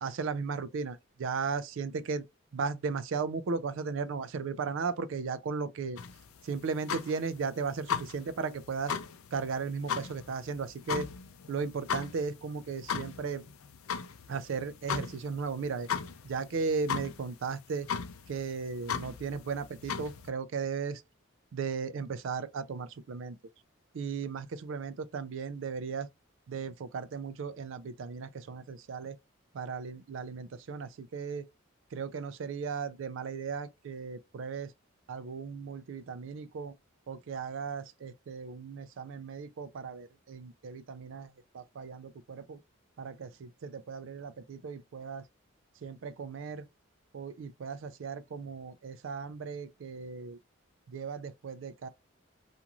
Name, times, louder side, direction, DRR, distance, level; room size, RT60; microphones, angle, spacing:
voice 1, 0.0-2.2 2.5-6.0 6.4-8.9 9.3-11.1 11.5-13.4 14.3-15.9 16.2-17.9 18.3-21.0 21.5-23.4 23.9-26.1 26.5-29.2 29.5-31.5 31.9-34.7 35.1-36.7 37.1-42.6 43.0-45.2 45.8-46.7 47.1-50.4 50.9-51.9, right 5 dB, 65° right, 0.4 m, -36 dB
sound 1, 6.0-20.3, left 7 dB, 90° left, 0.4 m, -38 dB
2.9 x 2.5 x 2.3 m
head